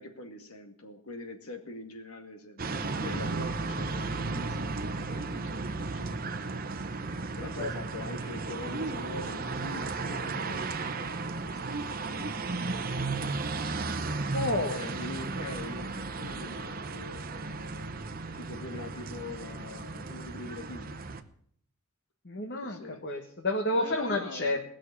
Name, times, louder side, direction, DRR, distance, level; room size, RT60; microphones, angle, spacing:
voice 1, 0.0-2.6 3.0-6.8 7.4-13.1 14.6-17.9 18.3-21.2 22.6-23.1 23.7-24.6, left 2 dB, 85° left, 6 dB, 2.1 m, -44 dB
sound 1, 2.6-21.2, right 3 dB, 40° right, 0.9 m, -34 dB
voice 2, 14.3-14.8 22.2-24.6, left 1 dB, 50° left, 3 dB, 1.4 m, -30 dB
19.0 x 6.5 x 9.7 m, 0.64 s
head